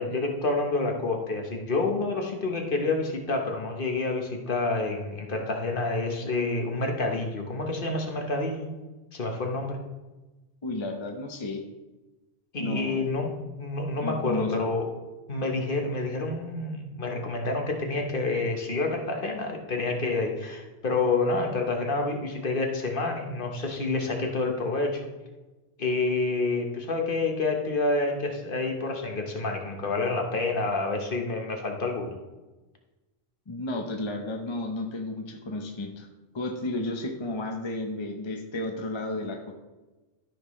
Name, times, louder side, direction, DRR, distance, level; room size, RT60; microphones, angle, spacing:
voice 1, 0.0-8.7 9.1-9.8 12.5-14.8 15.3-25.1 25.8-32.1, left 3 dB, 55° left, 2 dB, 1.3 m, -28 dB
voice 2, 10.6-11.6 12.6-13.1 14.0-14.5 33.5-36.1 36.3-39.5, left 2 dB, 30° left, 3 dB, 0.8 m, -32 dB
13.5 x 5.8 x 3.1 m, 1.1 s
omnidirectional pair, 1.1 m